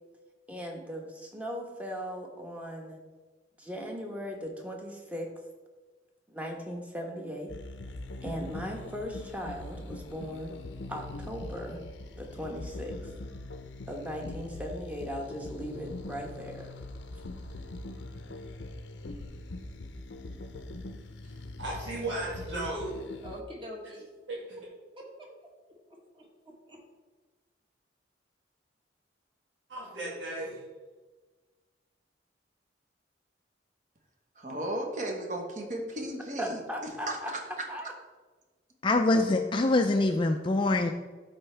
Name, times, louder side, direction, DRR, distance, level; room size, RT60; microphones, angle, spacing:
voice 1, 0.5-3.0 3.6-5.3 6.3-7.6 8.2-10.5 10.9-11.8 12.2-13.0 13.9-16.7 36.4-37.3 37.7-37.9, equal, 10° right, 1 dB, 1.0 m, -38 dB
sound 1, 7.5-23.4, left 2 dB, 85° left, 0.6 m, -42 dB
voice 2, 21.2-23.0 24.3-24.4 29.7-30.6, right 2 dB, 85° right, -7 dB, 2.3 m, -35 dB
voice 3, 23.2-24.0 25.0-25.3 25.9-26.8, equal, 30° right, -1 dB, 1.5 m, -45 dB
voice 4, 34.4-37.2, right 1 dB, 45° right, 2 dB, 1.2 m, -35 dB
voice 5, 38.8-40.9, left 2 dB, 25° left, 5 dB, 0.4 m, -24 dB
12.0 x 4.4 x 3.3 m, 1.3 s
head